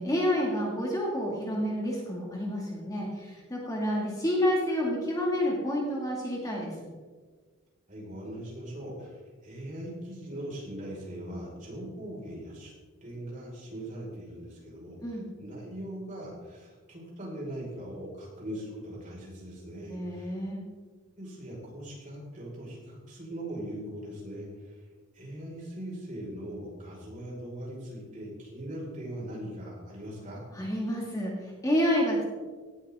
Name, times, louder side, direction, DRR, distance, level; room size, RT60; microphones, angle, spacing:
voice 1, 0.0-6.7 15.0-15.2 19.9-20.6 30.5-32.2, equal, 15° left, -3 dB, 2.3 m, -29 dB
voice 2, 7.9-12.7 13.0-20.4 21.2-24.8 25.1-30.4, right 1 dB, 35° right, -4 dB, 5.3 m, -40 dB
18.0 x 13.0 x 3.7 m, 1.4 s
head